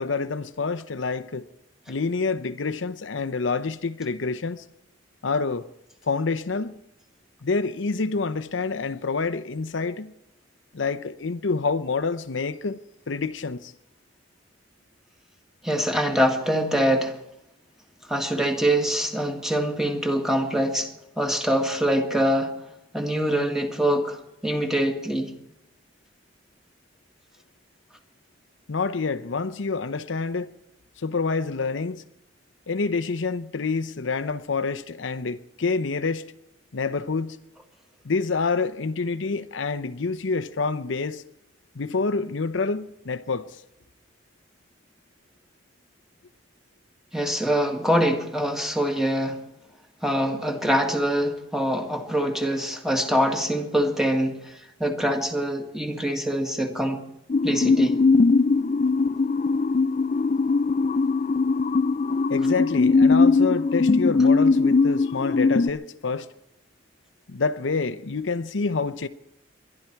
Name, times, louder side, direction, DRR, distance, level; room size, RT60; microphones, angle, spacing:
voice 1, 0.0-1.5 1.9-4.6 5.2-5.7 6.0-6.8 7.4-10.1 10.7-12.8 13.1-13.7 28.7-30.5 31.0-32.0 32.7-36.2 36.7-37.4 38.0-41.2 41.7-43.5 62.3-66.3 67.3-69.1, left 4 dB, 85° left, 0.7 m, -27 dB
voice 2, 15.6-17.2 18.1-20.9 21.2-22.6 22.9-25.3 47.1-49.4 50.0-57.0 57.4-58.0, equal, ahead, 1.9 m, -24 dB
sound 1, 57.3-65.7, left 4 dB, 40° left, 0.4 m, -20 dB
22.0 x 12.0 x 4.6 m
head